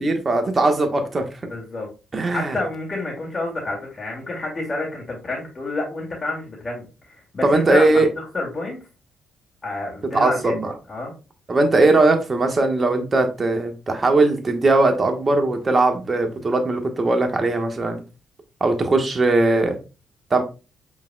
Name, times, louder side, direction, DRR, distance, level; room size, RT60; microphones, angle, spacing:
voice 1, 0.0-1.3 2.1-2.6 7.4-8.1 10.1-10.7 11.5-18.0 18.6-19.8 20.3-20.4, right 2 dB, 35° right, 5 dB, 1.3 m, -19 dB
voice 2, 1.4-1.9 2.3-8.8 9.6-10.6 10.9-11.1, left 2 dB, 35° left, -3 dB, 2.1 m, -29 dB
5.4 x 3.9 x 2.3 m, 0.32 s
hypercardioid pair, 50°, 0 cm